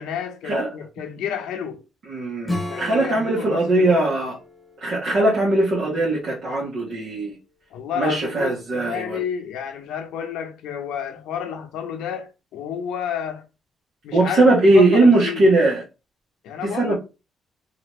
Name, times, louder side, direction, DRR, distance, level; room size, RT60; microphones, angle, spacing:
voice 1, 0.0-1.8 2.7-4.3 7.7-13.4 14.0-14.4 14.7-15.5 16.4-17.0, left 8 dB, 90° left, 0.6 m, -31 dB
voice 2, 2.1-4.4 4.8-7.3 8.0-9.2 14.1-15.8 16.6-17.0, right 2 dB, 60° right, 1.2 m, -19 dB
Acoustic guitar / Strum, 2.4-6.7, left 1 dB, 15° left, 1.1 m, -36 dB
3.0 x 2.5 x 3.0 m
cardioid pair, 90°, 0 cm